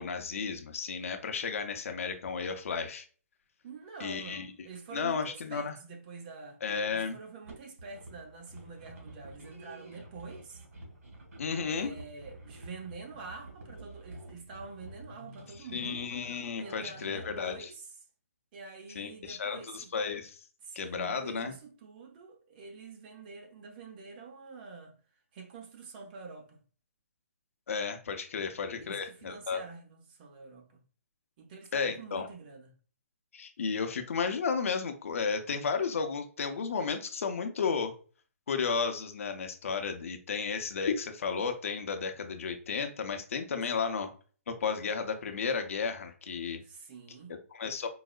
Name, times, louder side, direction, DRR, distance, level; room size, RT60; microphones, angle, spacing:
voice 1, 0.0-3.0 4.0-4.5 4.9-5.7 6.6-7.2 11.4-11.9 15.7-17.7 19.0-20.4 20.7-21.5 27.7-29.6 31.7-32.3 33.3-37.9 38.5-44.1 44.5-46.6 47.3-47.9, left 5 dB, 65° left, 0.6 m, -33 dB
voice 2, 3.6-6.6 6.9-10.6 11.6-16.0 16.6-17.9 18.5-19.9 20.6-24.9 25.3-26.6 28.4-28.5 28.8-30.8 31.4-32.7 43.7-43.9 46.6-47.3, right 4 dB, 40° right, 0.8 m, -47 dB
sound 1, 7.4-17.5, right 1 dB, 70° right, 1.5 m, -49 dB
4.6 x 2.0 x 2.3 m
hypercardioid pair, 145°, 8 cm